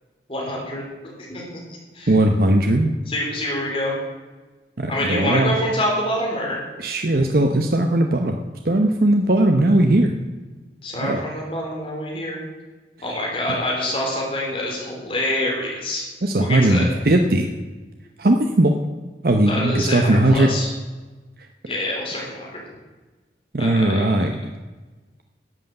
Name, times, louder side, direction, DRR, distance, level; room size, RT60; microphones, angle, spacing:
voice 1, 0.3-1.4 1.9-2.1 3.1-3.9 4.9-6.6 10.8-12.4 13.0-16.0 16.4-16.9 19.5-20.7 21.7-22.6 23.6-24.3, left 1 dB, 30° left, -2 dB, 3.5 m, -26 dB
voice 2, 2.1-2.9 4.8-5.6 6.8-8.4 8.6-10.1 10.9-11.2 13.5-13.6 16.2-17.5 18.2-18.8 19.2-20.5 21.4-21.5 23.5-24.4, right 1 dB, 55° right, 4 dB, 0.8 m, -18 dB
11.0 x 8.2 x 7.8 m, 1.3 s
head